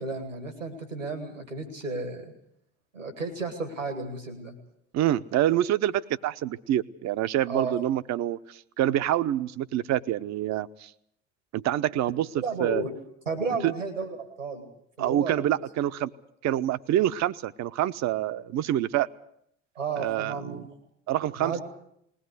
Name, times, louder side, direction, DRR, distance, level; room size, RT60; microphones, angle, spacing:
voice 1, 0.0-2.3 2.9-4.6 7.5-7.8 12.4-12.9 13.3-14.7 15.0-15.5 19.8-20.8 21.4-21.6, right 4 dB, 90° right, 8 dB, 2.2 m, -33 dB
voice 2, 4.9-10.9 11.5-12.3 12.6-12.8 13.6-13.7 15.0-16.1 16.4-19.1 20.0-20.7 21.1-21.5, right 12 dB, 45° right, 14 dB, 0.8 m, -26 dB
20.5 x 18.0 x 8.2 m, 0.73 s
figure-of-eight pair, 55°, 37 cm